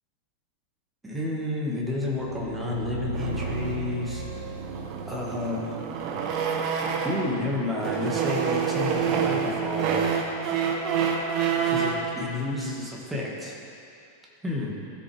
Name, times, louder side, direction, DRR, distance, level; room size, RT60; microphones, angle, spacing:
voice 1, 1.0-4.2 5.1-5.8 7.0-10.0 11.6-13.6 14.4-14.7, left 2 dB, 10° right, -3 dB, 2.0 m, -31 dB
sound 1, 1.8-6.8, right 1 dB, 70° right, 0.6 m, -36 dB
sound 2, 3.1-7.4 7.8-12.1, right 7 dB, 40° right, 1.1 m, -28 dB
15.5 x 7.1 x 3.5 m, 2.6 s
figure-of-eight pair, 90°, 0 cm